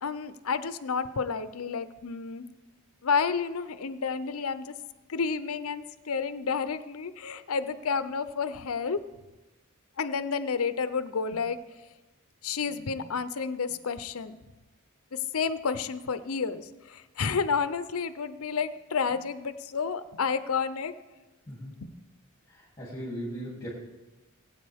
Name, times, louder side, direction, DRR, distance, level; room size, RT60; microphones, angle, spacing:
voice 1, 0.0-2.5 3.0-4.7 5.1-9.0 10.0-11.6 12.4-14.4 15.3-20.9 21.8-21.9, left 5 dB, 80° left, 12 dB, 0.6 m, -30 dB
voice 2, 22.5-23.7, equal, 15° left, -7 dB, 2.8 m, -38 dB
20.0 x 8.8 x 3.5 m, 1.1 s
head